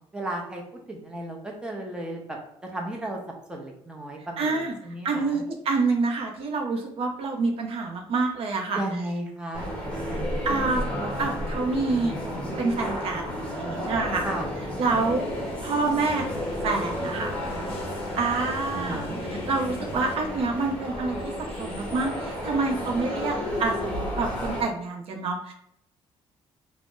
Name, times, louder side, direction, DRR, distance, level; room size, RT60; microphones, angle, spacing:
voice 1, 0.1-0.6 0.9-2.2 2.6-3.2 3.5-5.4 8.7-10.9 14.2-14.5 18.7-19.2, right 1 dB, 10° right, 0 dB, 0.6 m, -34 dB
voice 2, 4.4-4.7 5.0-8.8 10.4-12.1 12.6-14.3 14.8-15.2 15.6-17.4 18.1-19.0 19.3-25.5, right 3 dB, 60° right, 2 dB, 0.5 m, -27 dB
sound 1, 9.5-24.6, equal, 10° left, 1.0 m, -32 dB
sound 2, 14.9-20.2, left 2 dB, 55° left, 0.6 m, -41 dB
2.5 x 2.0 x 3.6 m, 0.74 s
cardioid pair, 110°, 11 cm